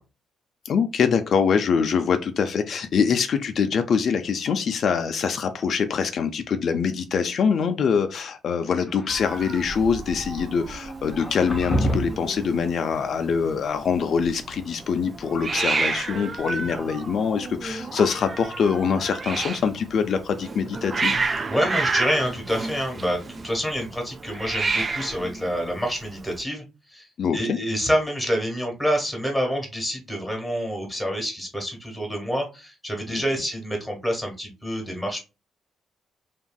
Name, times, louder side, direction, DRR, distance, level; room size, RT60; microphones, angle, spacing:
voice 1, 0.7-21.2 27.2-27.6 33.1-33.2, left 6 dB, 60° left, 7 dB, 0.3 m, -24 dB
sound 1, 8.8-9.7 11.1-12.3, equal, 20° left, 0.6 m, -28 dB
Hiss, 9.1-26.4, right 3 dB, 35° right, 0.3 m, -31 dB
voice 2, 21.5-26.6 26.9-27.1 27.3-35.2, equal, ahead, 1 dB, 1.3 m, -27 dB
2.9 x 2.6 x 2.2 m, 0.28 s
cardioid pair, 90°, 0 cm